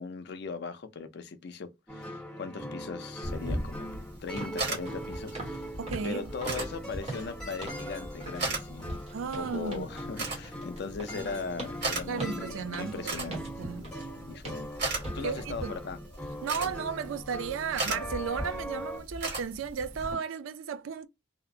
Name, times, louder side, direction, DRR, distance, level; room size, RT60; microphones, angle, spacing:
voice 1, 0.0-5.7 6.0-14.7 15.1-16.0 16.6-16.7, left 4 dB, 55° left, 0.4 m, -39 dB
sound 1, 1.9-19.0, equal, 5° left, 1.0 m, -41 dB
sound 2, 3.2-20.1, right 2 dB, 55° right, 1.4 m, -38 dB
sound 3, 4.4-4.6 4.9-5.1 5.3-5.6 5.9-7.9 8.2-8.5 8.8-14.1 14.4-14.7 15.0-15.2 15.7-15.8, right 2 dB, 30° right, 1.0 m, -42 dB
voice 2, 5.8-6.3 9.1-9.9 12.1-13.8 15.2-15.8 16.4-21.1, right 6 dB, 80° right, 0.4 m, -34 dB
2.6 x 2.0 x 2.6 m
head